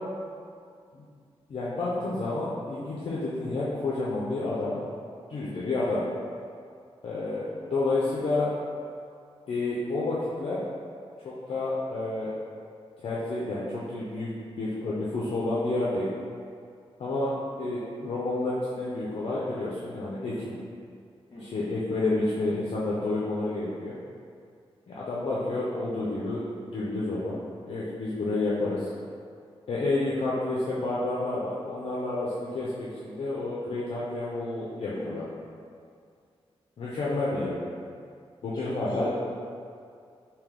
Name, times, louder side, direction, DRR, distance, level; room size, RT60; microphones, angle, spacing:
voice 1, 1.5-4.8 5.3-6.0 7.0-8.5 9.5-10.6 11.2-12.3 13.0-14.3 14.6-16.1 17.0-20.6 21.4-24.0 24.9-27.4 27.7-28.9 29.7-35.2 36.8-37.5 38.4-39.1, left 2 dB, 60° left, -7 dB, 0.5 m, -30 dB
voice 2, 5.3-5.7 21.3-21.6 34.9-35.2 38.5-39.1, left 1 dB, 40° left, -8 dB, 1.3 m, -41 dB
3.4 x 2.8 x 3.6 m, 2.3 s
wide cardioid pair, 145°, 11 cm